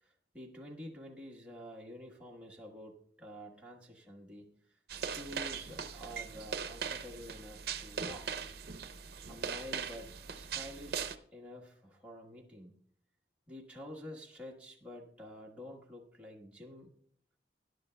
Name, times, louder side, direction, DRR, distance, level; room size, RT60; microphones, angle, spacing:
voice 1, 0.0-8.5 9.3-11.1 11.3-12.7 13.5-16.9, equal, 5° right, -3 dB, 1.3 m, -49 dB
sound 1, 4.9-11.2, right 6 dB, 60° right, 0.7 m, -40 dB
20.5 x 11.0 x 2.2 m, 0.62 s
head